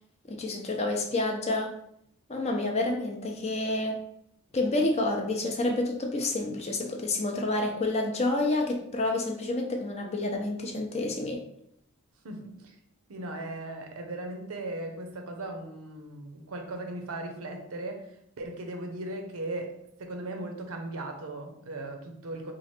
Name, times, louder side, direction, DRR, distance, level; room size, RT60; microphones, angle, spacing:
voice 1, 0.3-1.7 2.3-4.0 4.5-11.4, left 2 dB, 30° left, 2 dB, 0.5 m, -29 dB
voice 2, 12.2-12.7 13.1-22.5, right 2 dB, 70° right, 4 dB, 0.6 m, -38 dB
3.0 x 2.5 x 4.2 m, 0.73 s
head